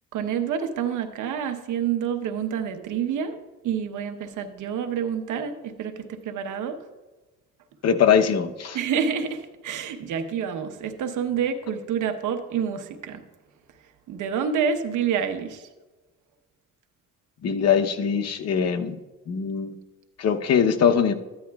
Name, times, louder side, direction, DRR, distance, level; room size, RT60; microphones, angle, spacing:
voice 1, 0.1-3.3 3.6-6.8 8.7-13.2 14.1-15.7, right 7 dB, 80° right, 6 dB, 1.1 m, -28 dB
voice 2, 7.8-8.8 17.4-19.0 19.3-19.8 20.2-21.1, left 7 dB, 55° left, 7 dB, 0.9 m, -21 dB
14.0 x 10.0 x 2.3 m, 1.2 s
cardioid pair, 90°, 30 cm